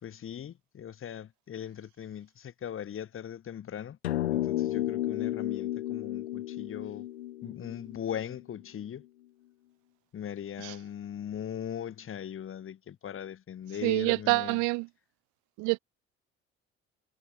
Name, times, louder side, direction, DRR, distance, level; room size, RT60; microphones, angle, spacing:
voice 1, 0.0-4.0 4.3-7.1 7.4-9.1 10.1-14.6, left 9 dB, 40° left, 1.4 m, -39 dB
sound 1, 4.0-8.6, left 14 dB, 80° left, 1.5 m, -33 dB
voice 2, 13.8-14.9 15.6-15.8, right 30 dB, 60° right, 0.7 m, -27 dB
figure-of-eight pair, 50°, 32 cm